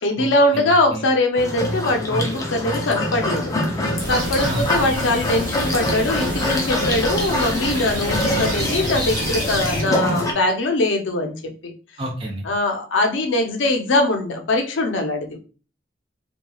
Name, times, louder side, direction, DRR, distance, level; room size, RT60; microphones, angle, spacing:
voice 1, 0.0-11.7 12.4-15.4, left 2 dB, 70° left, 4 dB, 0.5 m, -22 dB
voice 2, 0.5-1.0 2.1-2.3 4.4-4.7 12.0-12.5, right 1 dB, 25° right, 1 dB, 0.6 m, -29 dB
sound 1, 1.4-10.3, left 1 dB, 15° left, 0.4 m, -24 dB
sound 2, 4.0-9.8, right 1 dB, 45° right, 1.1 m, -29 dB
2.9 x 2.3 x 2.3 m, 0.37 s
head